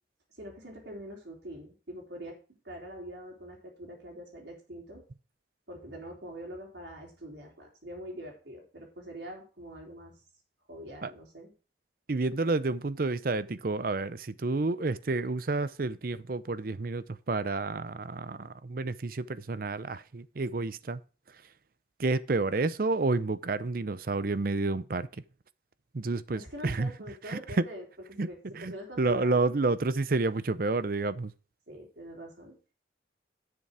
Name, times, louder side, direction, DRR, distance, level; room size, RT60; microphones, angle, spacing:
voice 1, 0.3-2.4 2.6-5.0 5.7-10.2 10.7-11.5 26.3-29.4 31.7-32.6, equal, 70° right, 4.0 m, -44 dB
voice 2, 12.1-21.0 22.0-25.1 25.9-26.9 27.3-27.4 28.2-28.3 28.5-31.3, right 3 dB, 50° right, 0.6 m, -30 dB
10.5 x 6.9 x 4.9 m
head